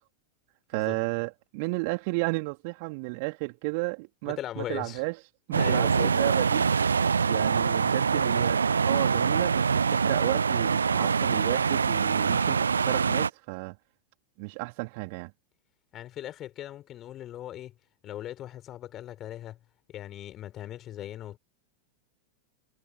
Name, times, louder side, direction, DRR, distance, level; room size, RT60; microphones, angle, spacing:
voice 1, 0.7-5.2 5.5-13.8 14.4-15.3, right 31 dB, 45° right, 3.6 m, -33 dB
voice 2, 4.3-5.0 5.6-6.1 15.9-17.7 18.0-19.6 19.9-21.4, left 12 dB, 30° left, 5.2 m, -39 dB
sound 1, 5.5-13.3, right 5 dB, 75° right, 0.5 m, -24 dB
figure-of-eight pair, 90°, 0 cm